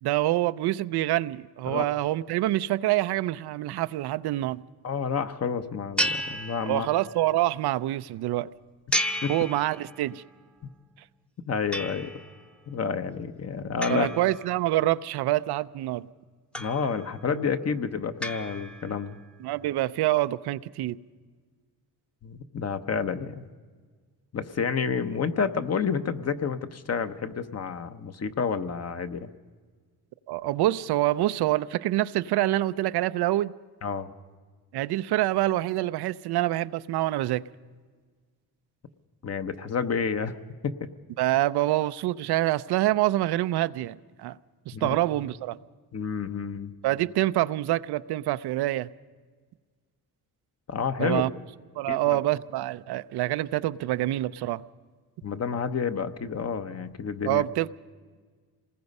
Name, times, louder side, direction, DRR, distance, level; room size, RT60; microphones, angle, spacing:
voice 1, 0.0-4.6 6.7-8.5 9.3-10.2 13.9-16.1 19.4-21.0 30.3-33.5 34.7-37.4 41.2-44.4 44.7-45.6 46.8-48.9 51.0-51.3 51.8-54.6 57.3-57.7, right 15 dB, 90° right, 0.6 m, -26 dB
voice 2, 4.8-6.9 9.2-9.3 11.5-12.1 12.7-14.1 16.6-19.2 22.2-23.5 24.3-29.3 33.8-34.1 39.2-40.3 40.6-40.9 44.7-45.0 45.9-46.7 50.7-51.2 51.9-52.2 55.2-57.4, left 6 dB, 40° left, 1.0 m, -29 dB
sound 1, 6.0-7.2 8.9-10.2 11.7-12.4 13.8-15.0 16.5-17.2 18.2-19.1, equal, 5° left, 0.8 m, -33 dB
27.0 x 20.0 x 5.4 m
cardioid pair, 110°, 38 cm